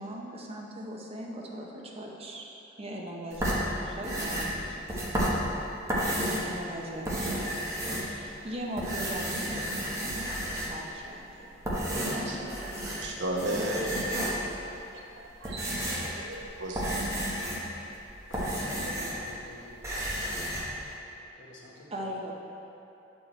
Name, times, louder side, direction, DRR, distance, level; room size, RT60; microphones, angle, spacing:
voice 1, 0.0-2.4 2.8-5.0 6.4-7.6 7.9-10.3 10.6-11.5 12.0-12.7 21.9-22.3, right 1 dB, 30° right, -1 dB, 0.8 m, -39 dB
sound 1, 3.3-6.6 6.9-8.4 8.7-10.9 11.5-13.1 13.4-14.6 15.1-19.3 19.6-20.7, equal, 15° right, 1.1 m, -32 dB
voice 2, 13.0-14.0 14.9-17.0, right 1 dB, 65° right, -1 dB, 0.9 m, -35 dB
voice 3, 18.3-19.9 21.4-22.1, left 1 dB, 75° left, -5 dB, 1.5 m, -48 dB
8.5 x 4.6 x 4.3 m, 2.9 s
head